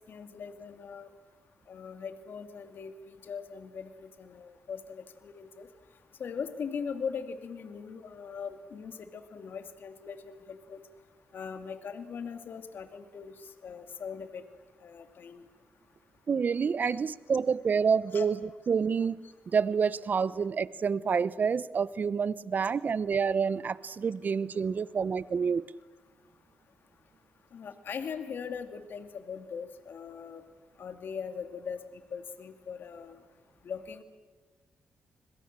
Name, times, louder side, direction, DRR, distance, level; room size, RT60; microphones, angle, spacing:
voice 1, 0.1-1.1 1.7-5.7 6.2-10.8 11.3-13.3 13.6-14.4 14.8-15.5 16.9-17.0 18.1-18.3 27.5-30.4 30.8-31.8 32.1-33.2 33.6-34.0, left 6 dB, 65° left, 2.4 m, -40 dB
voice 2, 16.3-18.3 18.7-19.2 19.5-25.6, right 6 dB, 50° right, 0.9 m, -28 dB
29.5 x 22.0 x 7.5 m
cardioid pair, 65°, 4 cm